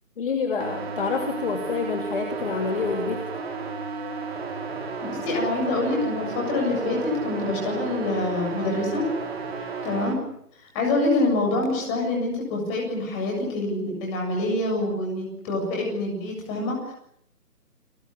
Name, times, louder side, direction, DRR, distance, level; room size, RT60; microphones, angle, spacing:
voice 1, 0.2-3.2, left 5 dB, 35° left, 4 dB, 2.9 m, -27 dB
sound 1, 0.6-10.2, right 4 dB, 40° right, 4.7 m, -33 dB
voice 2, 5.0-9.0 9.6-10.2 10.6-16.9, left 2 dB, 15° left, 0 dB, 7.5 m, -26 dB
30.0 x 19.0 x 9.8 m, 0.73 s
figure-of-eight pair, 160°, 47 cm